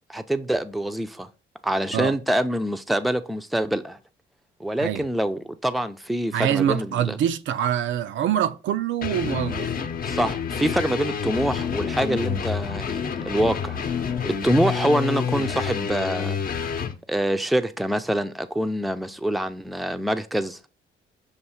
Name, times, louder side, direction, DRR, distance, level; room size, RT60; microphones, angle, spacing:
voice 1, 0.1-1.3 1.6-4.0 4.6-7.2 10.1-13.8 14.2-16.4 17.1-20.7, right 1 dB, ahead, 0.5 m, -25 dB
voice 2, 6.3-9.8, right 10 dB, 75° right, 0.5 m, -25 dB
sound 1, 9.0-16.9, left 7 dB, 45° left, 0.8 m, -28 dB
6.7 x 2.6 x 5.6 m
cardioid pair, 90°, 20 cm